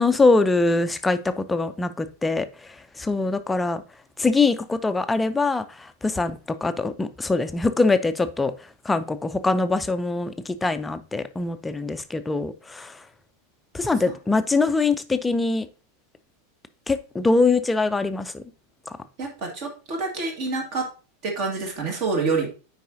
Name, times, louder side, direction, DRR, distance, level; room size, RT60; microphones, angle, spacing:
voice 1, 0.0-2.5 3.0-3.8 4.2-5.7 6.0-8.5 8.9-10.3 10.6-12.9 13.7-15.7 16.9-18.4, left 3 dB, 10° left, 11 dB, 0.5 m, -23 dB
voice 2, 19.2-20.9 21.2-22.5, right 4 dB, 40° right, 3 dB, 1.8 m, -27 dB
9.2 x 4.7 x 2.7 m, 0.34 s
figure-of-eight pair, 90°, 0 cm